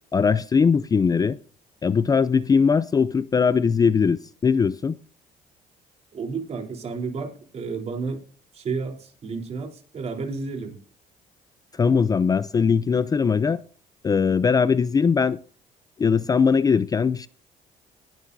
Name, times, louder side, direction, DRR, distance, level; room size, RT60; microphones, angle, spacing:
voice 1, 0.1-1.4 1.8-5.0 11.7-13.6 14.0-15.4 16.0-17.3, left 5 dB, 25° left, 0.4 m, -20 dB
voice 2, 6.1-8.2 8.5-10.8, right 4 dB, 45° right, 3.8 m, -31 dB
19.5 x 11.0 x 2.7 m
cardioid pair, 130°, 16 cm